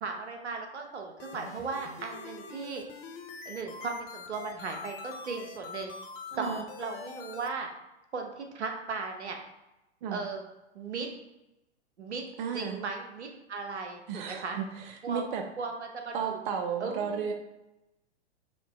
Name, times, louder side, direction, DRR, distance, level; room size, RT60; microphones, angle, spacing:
voice 1, 0.0-2.8 3.4-5.9 6.4-7.7 8.1-9.4 10.1-10.4 10.7-11.1 12.0-12.2 12.5-14.6 15.0-15.2 15.6-16.4 16.8-17.3, right 4 dB, 80° right, 3 dB, 1.0 m, -37 dB
sound 1, 1.2-7.5, left 5 dB, 35° left, 0.7 m, -44 dB
voice 2, 6.3-6.6 10.0-10.2 12.4-12.8 14.1-15.5 16.1-17.3, right 6 dB, 45° right, 4 dB, 0.7 m, -33 dB
5.0 x 3.0 x 3.6 m, 0.96 s
hypercardioid pair, 110°, 34 cm